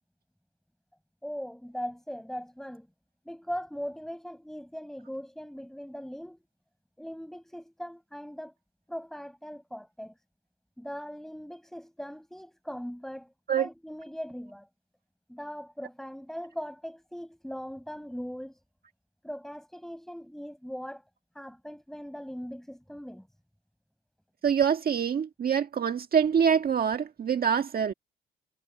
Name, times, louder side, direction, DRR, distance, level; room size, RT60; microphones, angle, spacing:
voice 1, 1.2-2.9 3.2-6.4 7.0-8.5 8.9-10.2 10.8-14.7 15.3-18.6 19.2-21.0 21.3-23.3, equal, ahead, 6.2 m, -40 dB
voice 2, 24.4-27.9, right 7 dB, 50° right, 1.6 m, -25 dB
cardioid pair, 90°, 20 cm